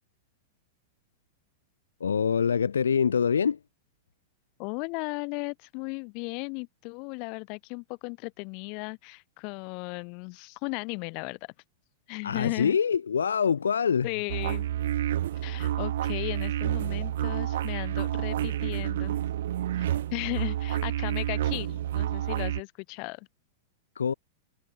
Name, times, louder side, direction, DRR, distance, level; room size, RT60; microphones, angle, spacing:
voice 1, 2.0-3.6 12.2-14.1 24.0-24.1, left 7 dB, 75° left, 0.4 m, -25 dB
voice 2, 4.6-11.5 12.1-12.8 14.0-14.7 15.4-19.2 19.8-23.3, left 35 dB, 45° left, 1.2 m, -36 dB
sound 1, 14.3-22.6, right 12 dB, 65° right, 0.6 m, -29 dB
figure-of-eight pair, 100°, 0 cm